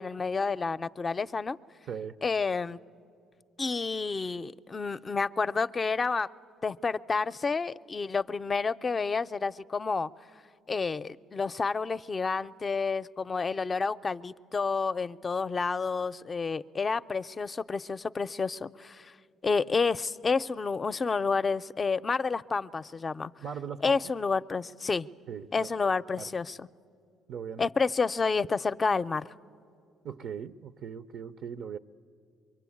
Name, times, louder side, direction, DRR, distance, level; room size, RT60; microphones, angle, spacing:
voice 1, 0.0-1.6 2.2-2.8 3.6-6.3 6.6-10.1 10.7-19.1 19.4-23.3 23.8-25.1 25.5-26.7 27.6-29.3, left 4 dB, 35° left, 14 dB, 0.5 m, -29 dB
voice 2, 23.4-24.0 25.3-25.7 26.1-26.3 27.3-27.7 30.0-31.8, right 7 dB, 65° right, 10 dB, 0.5 m, -39 dB
24.0 x 23.5 x 8.5 m, 2.4 s
supercardioid pair, 60°, 0 cm